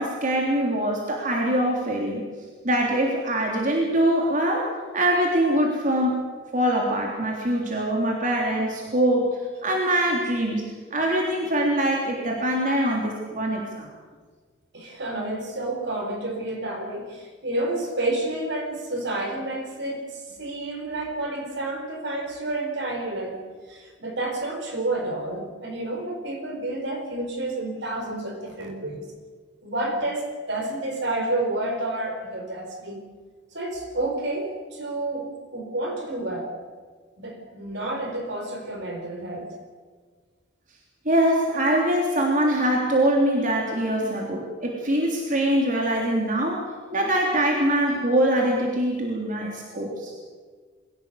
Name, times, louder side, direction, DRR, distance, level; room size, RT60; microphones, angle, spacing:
voice 1, 0.0-2.3 2.6-6.2 6.5-9.3 9.6-13.9 41.1-46.6 46.9-50.1, right 1 dB, 45° right, -1 dB, 3.4 m, -23 dB
voice 2, 14.7-23.4 23.7-29.1 29.6-33.0 33.5-36.5 37.2-39.5, right 2 dB, 65° right, 3 dB, 4.8 m, -30 dB
23.5 x 16.5 x 8.3 m, 1.5 s
head